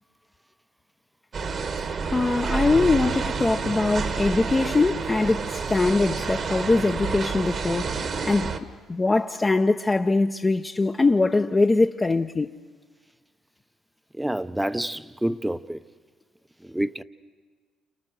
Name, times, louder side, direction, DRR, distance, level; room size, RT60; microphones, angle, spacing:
sound 1, 1.3-8.6, right 5 dB, 50° right, 1.7 m, -29 dB
voice 1, 2.1-8.5 8.9-12.5, left 3 dB, 25° left, 0.9 m, -22 dB
voice 2, 14.2-15.8 16.7-17.0, right 1 dB, 5° right, 0.9 m, -28 dB
29.5 x 28.5 x 6.5 m
hypercardioid pair, 60°, 0 cm